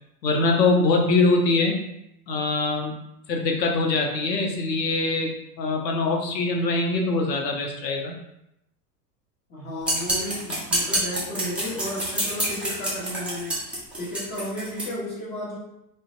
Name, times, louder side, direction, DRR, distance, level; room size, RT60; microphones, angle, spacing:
voice 1, 0.2-1.8 2.3-3.0 3.3-8.1, left 3 dB, 85° left, 2 dB, 0.7 m, -23 dB
voice 2, 9.5-13.6 14.0-15.6, left 1 dB, 20° left, -6 dB, 1.0 m, -33 dB
sound 1, 9.8-14.9, right 1 dB, 5° right, 0.4 m, -27 dB
2.5 x 2.1 x 2.4 m, 0.83 s
hypercardioid pair, 90°, 49 cm